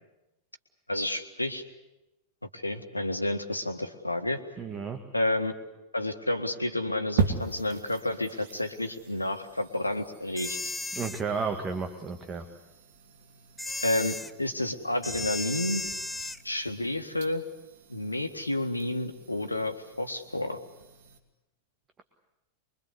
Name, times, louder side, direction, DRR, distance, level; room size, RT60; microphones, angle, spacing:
voice 1, 0.9-1.6 2.5-4.4 5.1-5.5 5.9-10.6 13.8-15.8 16.4-17.4 17.9-20.6, left 1 dB, 85° left, 8 dB, 1.7 m, -30 dB
voice 2, 4.6-5.0 10.9-12.5, right 5 dB, 20° right, 6 dB, 1.8 m, -32 dB
sound 1, 7.2-21.2, right 5 dB, 55° right, 2.5 m, -39 dB
sound 2, 10.4-11.2 13.6-14.3 15.0-16.4, left 2 dB, 5° left, 0.9 m, -35 dB
25.0 x 23.0 x 8.2 m, 0.96 s
figure-of-eight pair, 90°, 0 cm